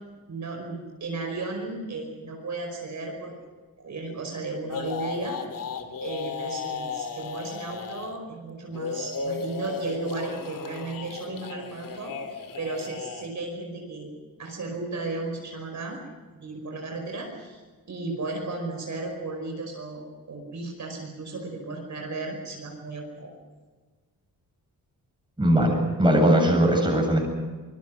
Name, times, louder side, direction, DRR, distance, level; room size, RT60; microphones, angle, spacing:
voice 1, 0.3-3.3 3.8-5.4 6.0-14.1 14.4-16.0 16.3-17.6 17.9-23.3, right 3 dB, 55° right, 1 dB, 5.3 m, -34 dB
sound 1, 4.7-8.2 8.7-13.3, left 5 dB, 65° left, 2.6 m, -35 dB
voice 2, 25.4-27.2, right 1 dB, 15° right, 1 dB, 7.9 m, -20 dB
25.5 x 22.0 x 6.4 m, 1.4 s
wide cardioid pair, 120°, 35 cm